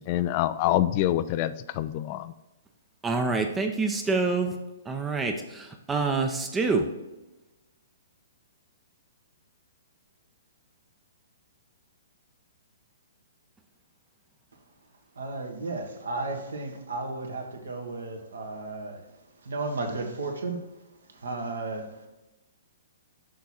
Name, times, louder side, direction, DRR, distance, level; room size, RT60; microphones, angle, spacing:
voice 1, 0.0-2.3, left 13 dB, 40° left, 15 dB, 0.4 m, -26 dB
voice 2, 3.0-4.5 4.9-6.9, right 4 dB, 15° right, 4 dB, 0.6 m, -26 dB
voice 3, 15.1-20.6 21.1-22.1, right 3 dB, 75° right, 3 dB, 1.3 m, -34 dB
6.5 x 4.6 x 4.2 m, 1.0 s
figure-of-eight pair, 120°, 0 cm